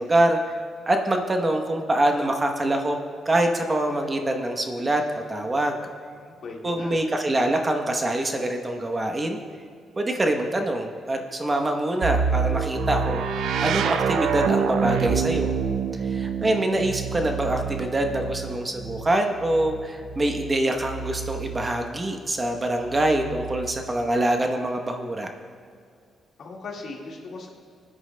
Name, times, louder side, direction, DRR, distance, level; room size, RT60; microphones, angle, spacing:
voice 1, 0.0-3.0 3.2-5.8 6.6-9.4 10.0-15.6 16.0-25.3, right 1 dB, 25° right, 4 dB, 0.9 m, -25 dB
voice 2, 6.2-6.9 26.4-27.5, left 3 dB, 65° left, -1 dB, 1.8 m, -38 dB
sound 1, 12.0-21.8 22.8-23.9, right 6 dB, 85° right, 0.5 m, -27 dB
19.5 x 9.9 x 2.2 m, 2.2 s
cardioid pair, 105°, 0 cm